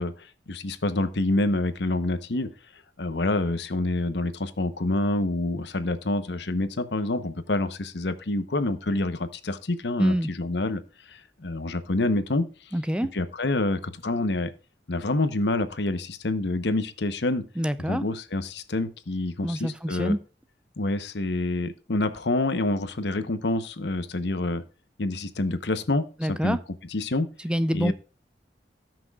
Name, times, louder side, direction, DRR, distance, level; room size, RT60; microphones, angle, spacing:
voice 1, 0.0-2.5 3.0-10.8 11.1-12.5 13.1-14.5 14.9-17.4 17.9-20.1 20.8-24.6 25.0-26.6 26.9-27.3 27.7-27.9, left 2 dB, 70° left, 11 dB, 0.9 m, -27 dB
voice 2, 10.0-10.3 12.7-13.1 17.6-18.0 19.4-20.2 26.2-26.6 27.4-27.9, equal, 5° right, 13 dB, 0.4 m, -26 dB
18.0 x 6.1 x 2.4 m, 0.34 s
head